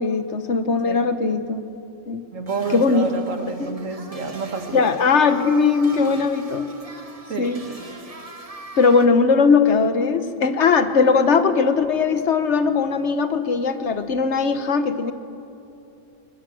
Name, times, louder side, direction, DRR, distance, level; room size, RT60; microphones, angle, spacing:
voice 1, 0.0-1.6 2.1-2.2 2.7-3.2 3.6-3.7 4.7-6.7 7.4-7.6 8.8-15.1, left 5 dB, 65° left, 9 dB, 1.4 m, -19 dB
voice 2, 2.3-4.9 7.3-7.5, right 4 dB, 85° right, 5 dB, 2.1 m, -29 dB
sound 1, 2.5-9.1, right 2 dB, 30° right, 1.4 m, -40 dB
21.5 x 20.0 x 7.7 m, 2.7 s
omnidirectional pair, 1.3 m